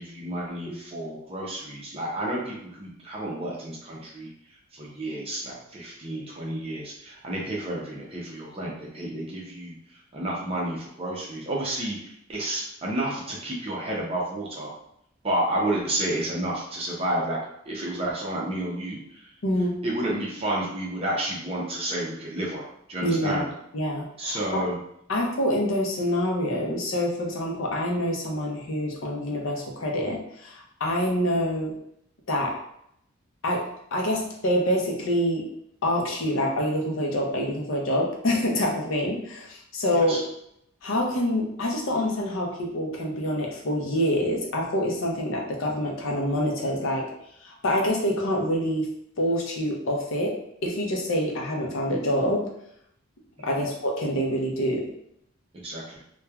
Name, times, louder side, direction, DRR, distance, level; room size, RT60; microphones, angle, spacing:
voice 1, 0.0-4.3 4.7-14.7 15.2-17.4 17.6-19.3 19.8-22.6 22.9-23.5 24.2-24.8 39.9-40.2 53.4-53.7 55.6-56.0, right 1 dB, 30° right, -4 dB, 0.5 m, -31 dB
voice 2, 19.4-19.8 23.0-23.4 23.7-24.6 25.1-31.7 32.3-32.5 33.4-33.6 33.9-35.4 35.8-40.1 40.8-47.0 47.4-48.9 49.2-50.3 50.6-52.5 53.4-54.8, equal, 65° left, 0 dB, 0.6 m, -26 dB
3.0 x 2.2 x 2.3 m, 0.74 s
head